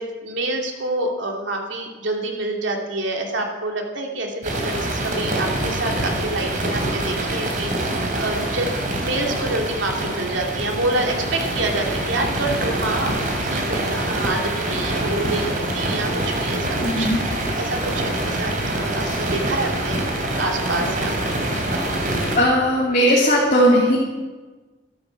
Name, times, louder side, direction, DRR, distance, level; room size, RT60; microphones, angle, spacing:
voice 1, 0.0-20.0 20.4-21.6, right 2 dB, 80° right, 2 dB, 2.6 m, -27 dB
sound 1, 4.4-22.4, right 1 dB, 45° right, 3.2 m, -25 dB
voice 2, 16.8-17.2 19.1-19.2 22.4-24.0, equal, 40° left, -4 dB, 2.7 m, -17 dB
13.5 x 12.5 x 7.2 m, 1.3 s
head